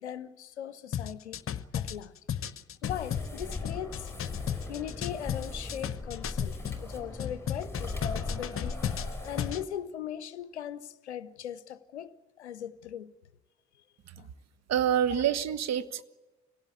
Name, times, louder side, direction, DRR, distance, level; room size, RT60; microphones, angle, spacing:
voice 1, 0.0-1.4 1.7-2.4 2.8-4.1 4.7-8.8 9.2-13.1 14.2-14.3 15.1-15.2, left 10 dB, 85° left, 0.6 m, -39 dB
sound 1, 0.9-6.8 7.2-9.6, left 9 dB, 40° left, 0.9 m, -34 dB
sound 2, 2.8-9.6, left 2 dB, 5° left, 5.6 m, -39 dB
voice 2, 14.7-16.0, right 9 dB, 50° right, 1.2 m, -27 dB
25.0 x 17.5 x 8.5 m
figure-of-eight pair, 40°, 33 cm